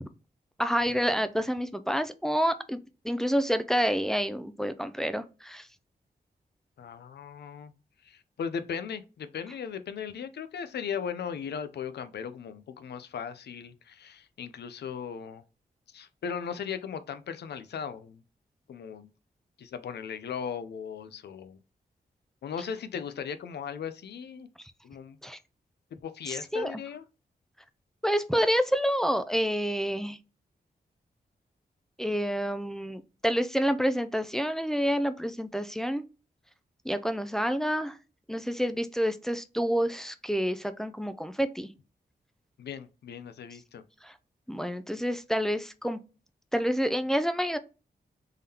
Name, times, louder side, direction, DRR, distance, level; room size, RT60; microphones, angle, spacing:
voice 1, 0.6-2.8 3.0-5.7 25.2-25.4 26.3-26.8 28.0-30.2 32.0-36.0 36.9-38.0 38.3-41.7 44.0-44.1 44.5-46.0 46.5-47.6, equal, 5° left, 0.3 m, -28 dB
voice 2, 6.8-7.7 8.0-15.4 15.9-18.2 18.7-19.1 19.6-21.6 22.4-24.5 24.8-25.2 25.9-27.0 42.6-43.8, left 7 dB, 90° left, 0.5 m, -37 dB
3.7 x 3.4 x 2.8 m
wide cardioid pair, 120°, 17 cm